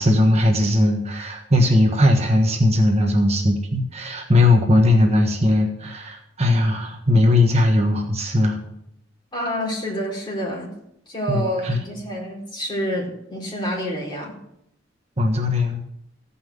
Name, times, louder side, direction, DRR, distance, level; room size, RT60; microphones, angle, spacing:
voice 1, 0.0-8.6 11.3-11.8 15.2-15.8, left 1 dB, 35° right, 2 dB, 1.4 m, -18 dB
voice 2, 9.3-10.7 11.1-14.4, equal, 25° left, -3 dB, 4.1 m, -28 dB
15.5 x 5.7 x 8.1 m, 0.76 s
head